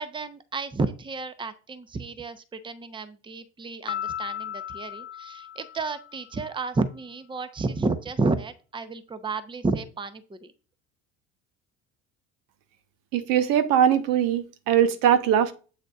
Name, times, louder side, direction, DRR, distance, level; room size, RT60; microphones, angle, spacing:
voice 1, 0.0-10.5, right 3 dB, 15° right, 0.8 m, -31 dB
Piano, 3.9-6.4, left 10 dB, 30° left, 0.6 m, -36 dB
voice 2, 13.1-15.5, right 9 dB, 60° right, 1.0 m, -21 dB
8.0 x 6.5 x 2.4 m
hypercardioid pair, 65°, 37 cm